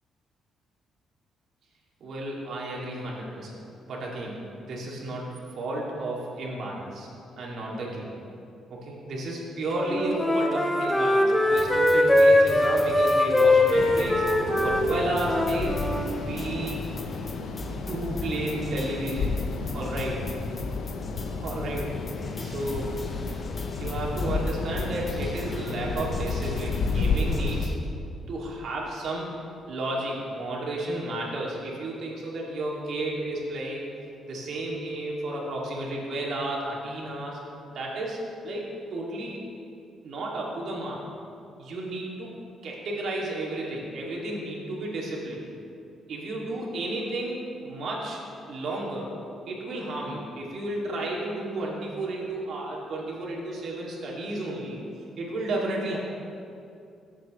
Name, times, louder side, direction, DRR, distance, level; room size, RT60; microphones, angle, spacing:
voice 1, 2.0-3.5 3.9-5.2 5.6-7.1 7.4-8.1 8.7-14.2 14.6-15.9 16.2-16.8 17.8-19.3 19.7-20.3 21.2-22.0 22.4-23.0 23.8-27.7 28.3-29.3 29.7-33.9 34.3-37.4 37.7-39.4 40.0-41.0 41.6-42.4 42.6-45.4 46.1-48.2 48.5-49.1 49.5-54.9 55.2-56.0, right 1 dB, 65° right, -3 dB, 2.3 m, -32 dB
Wind instrument woodwind instrument, 9.7-16.1, left 1 dB, 10° left, 1.1 m, -22 dB
sound 1, 11.5-27.8, left 1 dB, 35° left, 1.1 m, -40 dB
sound 2, 13.7-27.7, left 4 dB, 75° left, 0.7 m, -32 dB
15.0 x 7.5 x 3.1 m, 2.5 s
cardioid pair, 90°, 0 cm